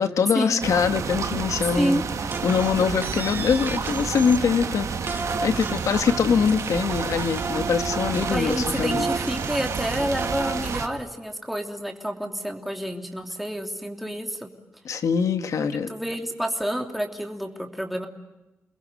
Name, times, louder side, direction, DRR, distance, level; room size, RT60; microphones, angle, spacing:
voice 1, 0.0-2.0 2.4-9.1 14.9-15.9, left 6 dB, 80° left, 9 dB, 1.8 m, -23 dB
sound 1, 0.6-10.9, right 6 dB, 70° right, 2.0 m, -30 dB
sound 2, 2.3-4.7 5.1-10.8, right 3 dB, 40° right, 2.2 m, -33 dB
voice 2, 8.3-14.5 15.9-18.1, right 1 dB, ahead, 3 dB, 3.0 m, -28 dB
29.5 x 21.0 x 9.2 m, 1.0 s
wide cardioid pair, 120°, 5 cm